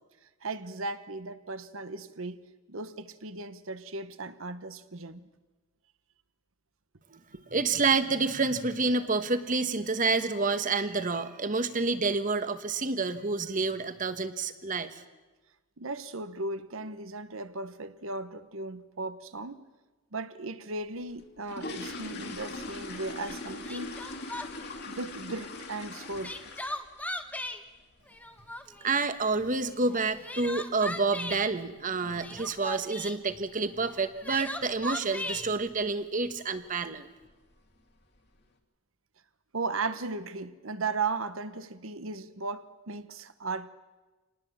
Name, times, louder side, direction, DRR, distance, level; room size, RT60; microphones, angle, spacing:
voice 1, 0.4-2.4 2.7-5.3 7.3-7.4 15.8-19.6 20.1-23.9 24.9-26.3 39.5-43.7, right 3 dB, 65° right, 1.2 m, -36 dB
voice 2, 7.1-15.0 28.8-37.1, right 4 dB, 40° right, 1.3 m, -29 dB
sound 1, 21.1-27.0 27.3-27.6 27.9-28.0 28.4-28.5 28.9-29.1 29.4-29.5 30.1-30.2 30.4-30.6 31.1-31.4 31.7-31.8 32.2-32.4 32.7-32.8 33.2-33.3 34.0-34.3 34.6-34.9 35.3-35.4 35.8-35.9 36.7-36.8 37.2-37.7 38.2-38.3, left 2 dB, 50° left, 2.4 m, -41 dB
Crying sobbing, 23.2-23.3 23.7-24.7 25.9-27.6 28.1-28.9 29.9-31.5 32.1-33.2 33.9-35.5, left 1 dB, 5° left, 1.2 m, -37 dB
27.0 x 19.0 x 7.3 m
head